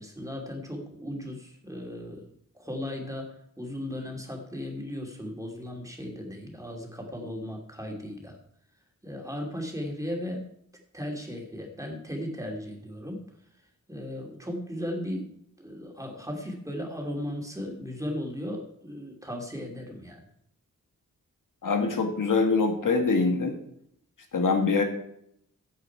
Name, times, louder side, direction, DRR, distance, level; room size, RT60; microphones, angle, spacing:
voice 1, 0.0-2.2 2.5-8.4 9.0-10.5 10.9-13.3 13.9-15.3 15.6-20.3, left 1 dB, 10° right, 1 dB, 2.9 m, -36 dB
voice 2, 21.6-23.6 24.3-24.8, left 4 dB, 75° left, 4 dB, 2.0 m, -24 dB
15.5 x 8.1 x 4.7 m, 0.72 s
wide cardioid pair, 110°, 32 cm